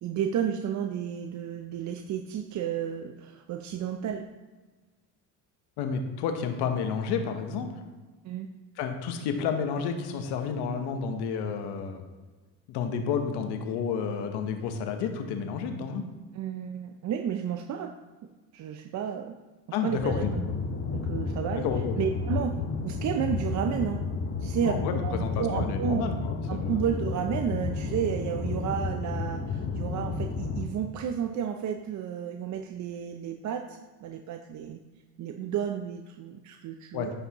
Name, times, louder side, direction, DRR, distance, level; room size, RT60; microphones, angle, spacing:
voice 1, 0.0-4.3 8.2-8.5 16.3-17.9 18.5-19.3 19.8-20.5 20.9-21.7 22.0-22.6 22.8-24.0 24.4-24.7 25.0-26.1 26.5-34.8 35.2-37.1, right 8 dB, 45° right, 5 dB, 0.5 m, -32 dB
voice 2, 5.8-7.8 8.8-12.0 12.7-16.0 19.7-20.3 21.5-22.0 24.6-26.8 36.9-37.1, left 6 dB, 75° left, 6 dB, 1.0 m, -30 dB
sound 1, 20.0-30.7, left 4 dB, 30° left, 1.0 m, -31 dB
9.9 x 5.3 x 2.9 m, 1.3 s
supercardioid pair, 95°, 40 cm